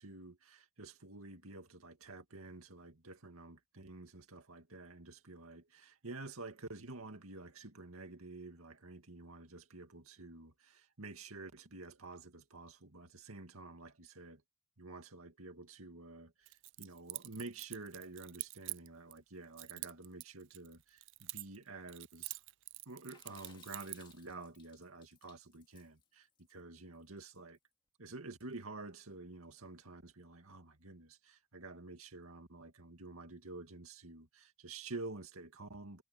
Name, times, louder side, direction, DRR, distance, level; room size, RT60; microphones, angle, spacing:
voice 1, 0.0-14.4 14.8-22.4 22.9-27.6 28.0-36.0, right 3 dB, 90° right, 2.2 m, -50 dB
Keys jangling, 16.5-19.2 19.6-21.6 21.9-24.1, right 20 dB, 60° right, 0.4 m, -46 dB
Water / Splash splatter, 23.1-27.6, left 5 dB, 20° left, 2.1 m, -64 dB
head